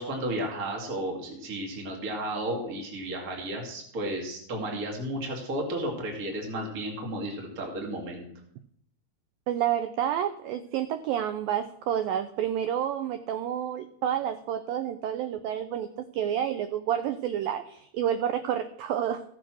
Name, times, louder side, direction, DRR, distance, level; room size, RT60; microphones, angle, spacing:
voice 1, 0.0-8.3, right 1 dB, 25° right, 0 dB, 2.1 m, -33 dB
voice 2, 9.5-19.2, right 10 dB, 85° right, 10 dB, 2.0 m, -29 dB
16.0 x 6.3 x 6.2 m, 0.68 s
omnidirectional pair, 4.8 m